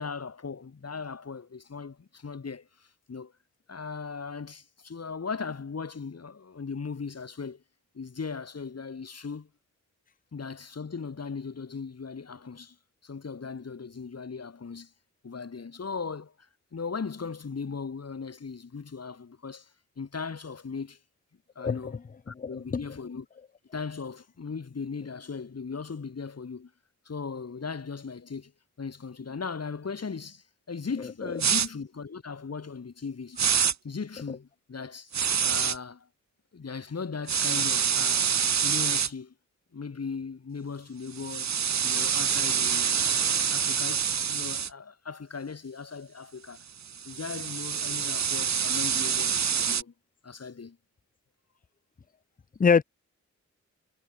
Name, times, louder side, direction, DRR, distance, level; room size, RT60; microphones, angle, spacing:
voice 1, 0.0-3.3 3.7-7.6 7.9-9.5 10.3-12.8 13.0-14.9 15.2-19.7 20.0-21.0 21.6-22.0 22.3-23.3 23.7-26.7 27.0-28.5 28.8-33.4 33.8-35.1 35.4-36.1 36.5-39.3 39.7-41.5 41.8-46.6 47.0-49.9 50.2-50.8, left 5 dB, 55° left, 6.1 m, -38 dB
voice 2, 21.6-22.0 22.4-22.8 52.6-52.8, left 5 dB, 30° left, 0.6 m, -24 dB
sound 1, 31.4-31.7 33.4-33.7 35.1-35.8 37.3-39.1 41.1-44.7 46.8-49.8, right 7 dB, 60° right, 1.2 m, -26 dB
wide cardioid pair, 120°, 31 cm